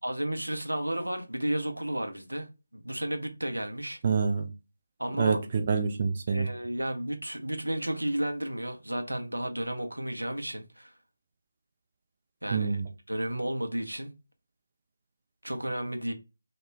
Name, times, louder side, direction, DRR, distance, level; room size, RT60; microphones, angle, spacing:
voice 1, 0.0-4.0 5.0-5.4 6.3-10.9 12.4-12.8 13.1-14.1 15.4-16.1, right 1 dB, 80° right, 0.5 m, -32 dB
voice 2, 4.0-4.5 5.2-6.5 12.5-12.8, right 5 dB, 30° right, 0.3 m, -26 dB
2.2 x 2.1 x 3.2 m
figure-of-eight pair, 155°, 0 cm